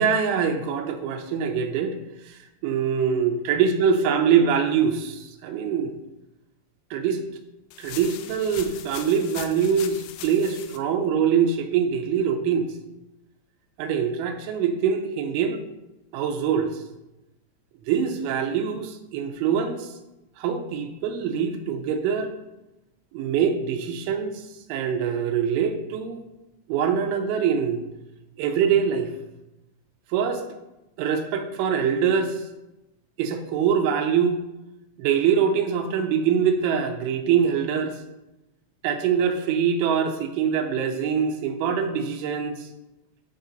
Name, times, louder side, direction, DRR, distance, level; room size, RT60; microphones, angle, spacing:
voice 1, 0.0-2.0 2.3-5.9 6.9-7.2 7.8-12.7 13.8-15.6 16.1-16.8 17.9-19.9 20.4-22.3 23.1-24.4 24.7-26.2 26.7-27.8 28.4-29.1 30.1-30.4 31.0-32.4 33.2-34.4 35.0-38.0 38.8-42.7, right 7 dB, 80° right, 5 dB, 3.1 m, -24 dB
sound 1, 7.7-10.8, left 10 dB, 85° left, 3.1 m, -40 dB
9.3 x 7.0 x 3.9 m, 0.97 s
omnidirectional pair, 5.5 m